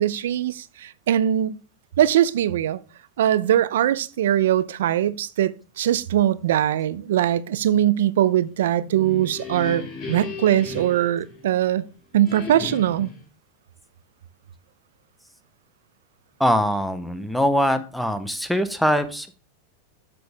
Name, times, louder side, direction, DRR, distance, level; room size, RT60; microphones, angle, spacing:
voice 1, 0.0-1.6 2.0-2.8 3.2-11.9 12.1-13.1, right 11 dB, 85° right, 0.6 m, -21 dB
sound 1, 8.8-11.8 12.2-13.2, left 3 dB, 30° left, 2.8 m, -36 dB
voice 2, 16.4-19.3, equal, ahead, 0.7 m, -22 dB
8.2 x 6.9 x 3.5 m
supercardioid pair, 165°, 0 cm